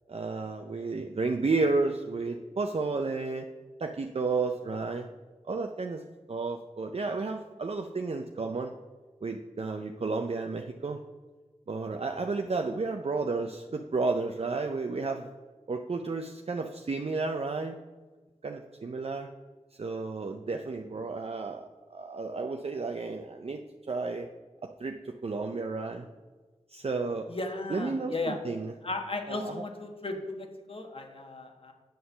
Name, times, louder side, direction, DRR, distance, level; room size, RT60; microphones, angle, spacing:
voice 1, 0.1-3.5 3.8-5.1 5.5-6.0 6.3-8.7 9.2-11.0 11.7-15.3 15.7-17.8 18.4-19.3 19.7-23.6 23.9-24.3 24.6-26.1 26.7-27.3 27.7-28.7 29.3-29.6, right 3 dB, 55° right, 4 dB, 0.5 m, -32 dB
voice 2, 27.3-28.4 28.8-31.7, left 2 dB, 50° left, 4 dB, 1.2 m, -35 dB
9.3 x 4.3 x 6.8 m, 1.4 s
wide cardioid pair, 70°, 12 cm